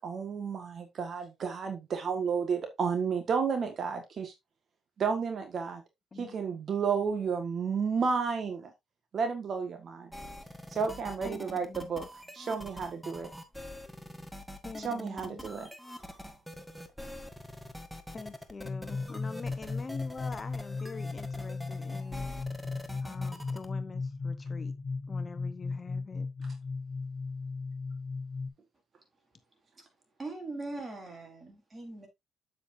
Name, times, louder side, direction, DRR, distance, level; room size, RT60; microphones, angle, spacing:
voice 1, 0.0-4.3 5.0-5.8 6.2-8.7 9.1-10.1 10.7-12.1 12.3-13.3 14.8-15.7, right 6 dB, 55° right, 1.7 m, -32 dB
sound 1, 10.1-23.7, left 1 dB, ahead, 1.5 m, -44 dB
voice 2, 11.2-12.1 14.6-15.5 18.1-22.3 23.0-24.7 25.1-26.3, left 4 dB, 35° left, 1.0 m, -44 dB
sound 2, 18.6-28.5, left 4 dB, 50° left, 1.5 m, -36 dB
voice 3, 30.2-32.1, right 2 dB, 30° right, 4.4 m, -40 dB
8.3 x 7.7 x 2.7 m
cardioid pair, 90°, 0 cm